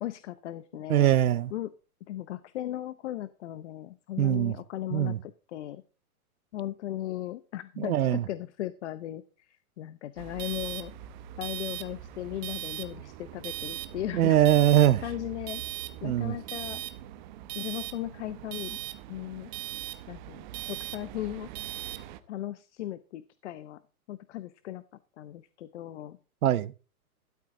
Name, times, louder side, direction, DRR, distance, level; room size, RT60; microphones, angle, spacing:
voice 1, 0.0-1.1 1.5-1.7 2.1-5.8 6.5-10.9 11.4-14.4 15.0-15.6 16.0-16.8 17.5-18.8 19.1-19.5 20.1-21.5 22.3-23.8 24.1-24.8 25.2-26.2, left 13 dB, 50° left, 0.8 m, -37 dB
voice 2, 0.9-1.5 4.2-4.5 4.9-5.2 7.8-8.2 14.1-15.0 16.0-16.4 26.4-26.7, right 12 dB, 75° right, 0.9 m, -22 dB
sound 1, 10.2-22.2, right 14 dB, 30° right, 0.9 m, -39 dB
13.0 x 12.0 x 3.8 m
hypercardioid pair, 155°, 44 cm